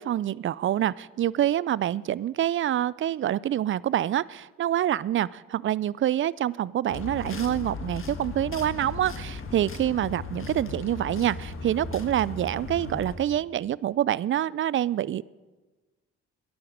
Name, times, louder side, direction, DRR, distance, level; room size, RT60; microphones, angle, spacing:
voice 1, 0.0-15.3, right 11 dB, 45° right, 22 dB, 0.4 m, -26 dB
sound 1, 6.9-13.2, left 4 dB, 45° left, 1.7 m, -37 dB
12.5 x 10.5 x 6.6 m, 1.2 s
supercardioid pair, 60°, 29 cm